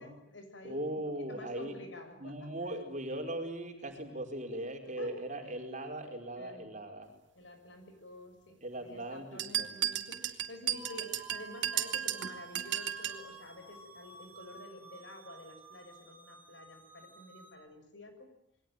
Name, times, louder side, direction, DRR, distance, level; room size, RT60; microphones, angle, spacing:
voice 1, 0.0-2.8 5.0-5.5 6.4-6.7 7.3-18.3, left 1 dB, 70° left, 7 dB, 6.6 m, -50 dB
voice 2, 0.6-1.8 2.2-7.1 8.6-9.7, right 1 dB, 40° right, 3 dB, 4.9 m, -39 dB
sound 1, 9.4-13.2, right 11 dB, 75° right, 2.5 m, -34 dB
sound 2, 10.7-17.5, right 2 dB, 10° right, 7.9 m, -53 dB
28.0 x 22.5 x 9.3 m, 0.74 s
head